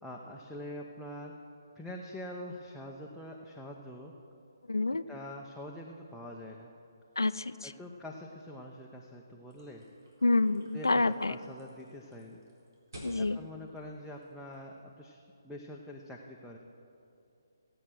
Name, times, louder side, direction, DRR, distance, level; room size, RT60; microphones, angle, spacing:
voice 1, 0.0-1.3 1.7-4.1 4.9-6.7 7.6-9.8 10.7-12.4 13.2-16.6, left 1 dB, ahead, -3 dB, 0.8 m, -45 dB
voice 2, 4.7-5.0 7.2-7.7 10.2-11.3 13.0-13.4, left 2 dB, 85° left, 13 dB, 0.5 m, -28 dB
sound 1, 9.5-14.8, equal, 65° right, 4.2 m, -54 dB
16.5 x 8.8 x 6.3 m, 2.7 s
figure-of-eight pair, 145°, 2 cm